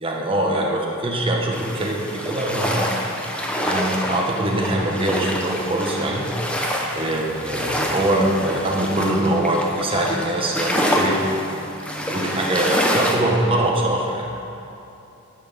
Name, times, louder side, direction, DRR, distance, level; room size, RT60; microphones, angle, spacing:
voice 1, 0.0-2.9 3.6-6.3 6.9-11.2 12.1-14.3, right 1 dB, 25° right, -1 dB, 1.3 m, -23 dB
sound 1, 1.5-13.2, equal, 5° left, 0.8 m, -26 dB
11.0 x 6.2 x 6.9 m, 2.9 s
head